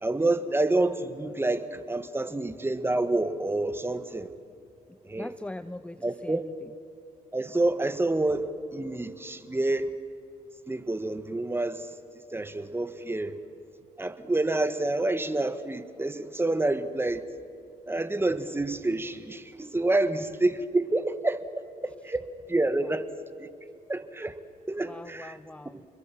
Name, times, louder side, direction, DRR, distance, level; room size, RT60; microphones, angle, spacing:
voice 1, 0.0-4.3 5.0-5.3 6.0-6.4 7.3-9.9 10.7-11.9 12.3-13.4 14.0-17.3 17.9-23.1 23.4-23.5 23.9-24.4 24.7-25.4, right 2 dB, 15° right, 1.7 m, -28 dB
voice 2, 4.9-6.7 22.8-22.9 24.8-25.9, left 1 dB, 5° left, 0.7 m, -42 dB
29.5 x 22.0 x 7.6 m
cardioid pair, 70°, 16 cm